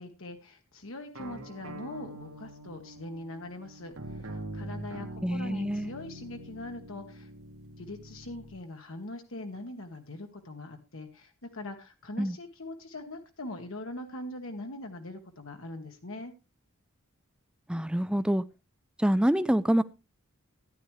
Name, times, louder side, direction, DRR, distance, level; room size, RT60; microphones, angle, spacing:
voice 1, 0.0-7.3 7.8-16.3, left 1 dB, 65° left, 1.4 m, -42 dB
sound 1, 1.2-8.6, right 1 dB, 75° right, 1.8 m, -44 dB
voice 2, 5.2-5.9 12.2-12.3 17.7-18.4 19.0-19.8, equal, 5° right, 0.5 m, -26 dB
13.5 x 10.5 x 3.2 m
head